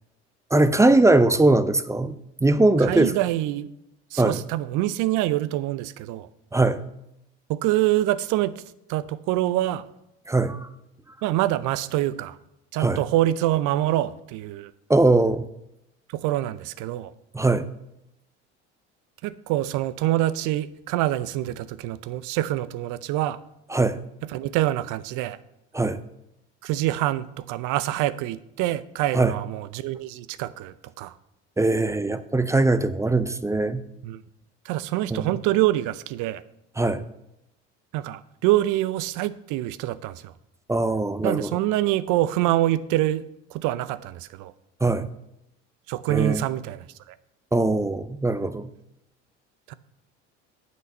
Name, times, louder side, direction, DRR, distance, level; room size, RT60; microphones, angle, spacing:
voice 1, 0.5-3.1 4.2-4.4 6.5-6.8 10.3-10.6 12.8-13.0 14.9-15.5 17.3-17.7 23.7-24.0 25.7-26.0 29.1-29.3 31.6-33.8 35.1-35.3 36.8-37.0 40.7-41.6 44.8-45.1 46.1-46.5 47.5-48.7, right 2 dB, 10° right, 13 dB, 0.5 m, -21 dB
voice 2, 2.8-3.7 4.1-6.3 7.5-8.5 8.9-9.8 11.2-12.4 12.7-14.7 16.1-17.1 19.2-23.4 24.3-25.4 26.6-31.1 34.0-34.2 34.6-36.4 37.9-40.3 41.2-43.2 43.5-44.5 45.9-47.1 49.7-49.8, right 14 dB, 65° right, 16 dB, 0.6 m, -25 dB
7.9 x 6.3 x 5.4 m, 0.83 s
hypercardioid pair, 70°, 33 cm